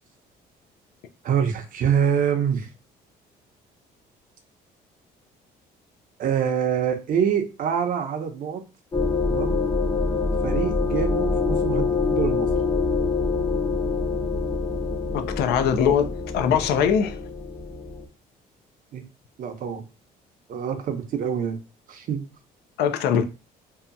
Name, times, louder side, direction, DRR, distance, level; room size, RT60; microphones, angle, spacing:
voice 1, 1.2-2.7 6.2-8.6 9.3-9.6 10.4-12.5 18.9-19.0 19.4-19.8 20.5-21.6 21.9-22.2, right 8 dB, 55° right, 0.6 m, -25 dB
sound 1, 8.9-18.0, left 4 dB, 25° left, 0.8 m, -25 dB
voice 2, 15.1-17.2 22.8-23.2, left 8 dB, 75° left, 0.5 m, -22 dB
2.7 x 2.2 x 2.5 m
cardioid pair, 110°, 17 cm